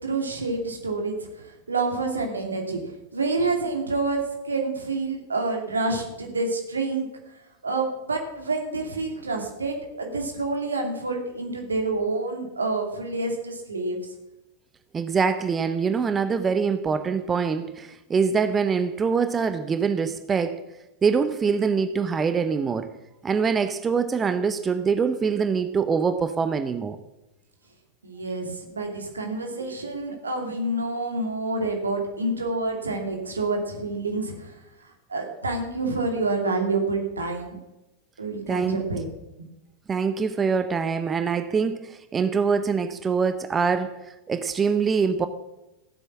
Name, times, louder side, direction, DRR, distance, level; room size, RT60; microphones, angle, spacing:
voice 1, 0.0-7.1 7.6-14.0 28.0-34.5 35.1-37.6 38.2-39.1, right 3 dB, 75° right, 2.5 m, -28 dB
voice 2, 14.9-20.6 21.0-22.9 23.2-27.0 38.5-38.8 39.9-45.3, right 5 dB, 20° right, 0.7 m, -24 dB
14.5 x 8.0 x 7.3 m
figure-of-eight pair, 90°, 0 cm